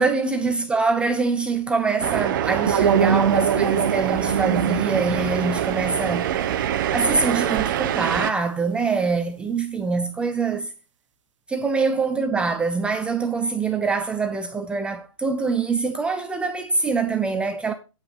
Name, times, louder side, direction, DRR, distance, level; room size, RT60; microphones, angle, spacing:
voice 1, 0.0-6.3 6.9-10.7 11.5-17.7, right 4 dB, 5° right, 0.4 m, -24 dB
sound 1, 2.0-8.3, right 11 dB, 40° right, 0.8 m, -25 dB
sound 2, 2.7-7.6, right 7 dB, 70° right, 0.8 m, -25 dB
9.0 x 5.6 x 5.3 m
hypercardioid pair, 145°, 16 cm